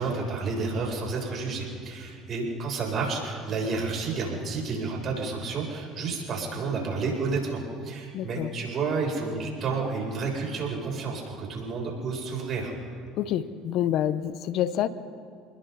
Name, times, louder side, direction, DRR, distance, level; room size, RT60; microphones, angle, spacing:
voice 1, 0.0-12.7, right 4 dB, 50° right, -1 dB, 7.6 m, -30 dB
voice 2, 8.1-8.5 13.1-14.9, left 11 dB, 60° left, 13 dB, 1.0 m, -27 dB
29.5 x 21.0 x 4.2 m, 2.2 s
supercardioid pair, 85°, 0 cm